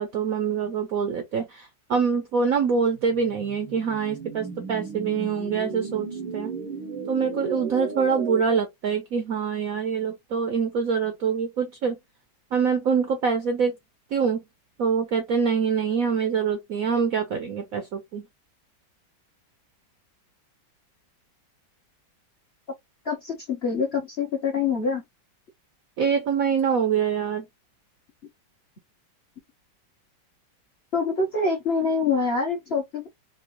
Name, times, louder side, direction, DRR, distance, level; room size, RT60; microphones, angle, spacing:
voice 1, 0.0-6.5 7.1-12.0 12.5-13.8 14.1-14.4 14.8-18.3 26.0-27.4, right 6 dB, 65° right, 0.8 m, -25 dB
sound 1, 2.9-8.4, right 6 dB, 85° right, 1.6 m, -35 dB
voice 2, 23.0-25.0 30.9-33.1, left 4 dB, 45° left, 0.9 m, -25 dB
3.6 x 2.7 x 2.9 m
omnidirectional pair, 2.1 m